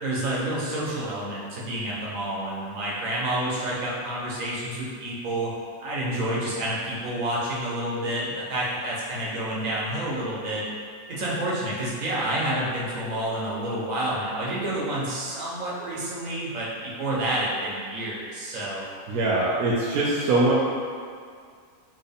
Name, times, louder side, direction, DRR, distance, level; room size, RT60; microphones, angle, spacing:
voice 1, 0.0-5.5 5.8-10.6 11.1-16.7 17.0-18.8, right 1 dB, 70° right, -6 dB, 1.4 m, -29 dB
voice 2, 19.1-20.5, right 2 dB, 85° right, -6 dB, 1.1 m, -22 dB
4.4 x 3.2 x 3.4 m, 2.1 s
omnidirectional pair, 1.5 m